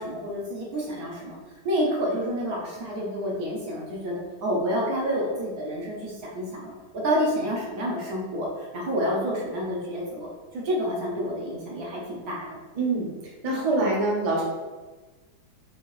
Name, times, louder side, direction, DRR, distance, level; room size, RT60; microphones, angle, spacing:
voice 1, 0.0-1.4 1.6-6.7 7.0-10.3 10.5-12.4, equal, 55° right, -4 dB, 1.2 m, -29 dB
voice 2, 12.7-13.1 13.4-14.4, right 2 dB, 35° right, -4 dB, 0.6 m, -24 dB
4.7 x 3.0 x 3.1 m, 1.3 s
omnidirectional pair, 2.1 m